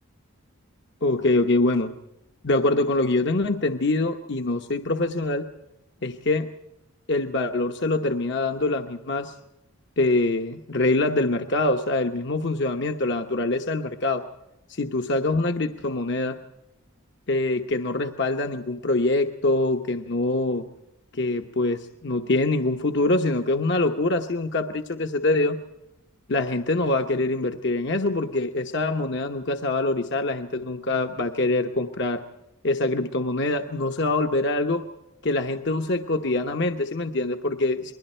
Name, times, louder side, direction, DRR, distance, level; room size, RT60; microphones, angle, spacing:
voice 1, 1.0-1.9 2.4-5.5 6.0-6.5 7.1-9.3 10.0-14.2 14.7-16.4 17.3-20.6 21.1-25.6 26.3-32.2 32.6-34.8 35.2-37.9, left 2 dB, 55° left, 5 dB, 1.0 m, -24 dB
28.0 x 21.5 x 4.5 m, 0.89 s
head